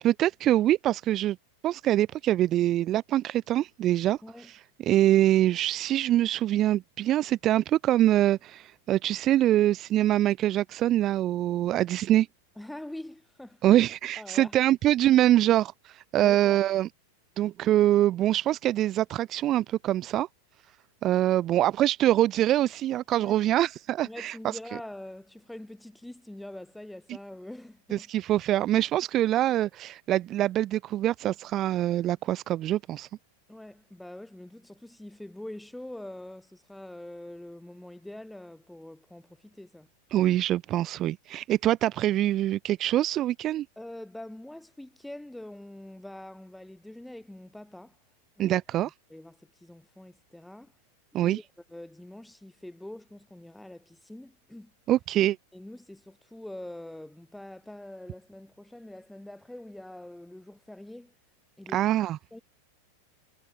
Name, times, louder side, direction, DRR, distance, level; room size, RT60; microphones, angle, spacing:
voice 1, 0.0-1.4 1.6-4.2 4.5-12.3 13.6-16.9 17.4-20.3 21.0-24.4 27.9-33.1 40.1-43.7 48.4-48.9 51.1-51.4 54.9-55.4 61.7-62.2, right 13 dB, 30° right, 1.1 m, -24 dB
voice 2, 12.6-13.6 14.2-14.5 16.2-16.6 23.2-23.3 24.0-28.1 33.5-39.9 43.8-48.0 48.3-48.6 49.1-50.7 51.1-51.4 51.7-54.7 55.5-61.1 61.6-61.8 62.3-62.4, left 1 dB, 5° left, 4.9 m, -44 dB
figure-of-eight pair, 90°, 0 cm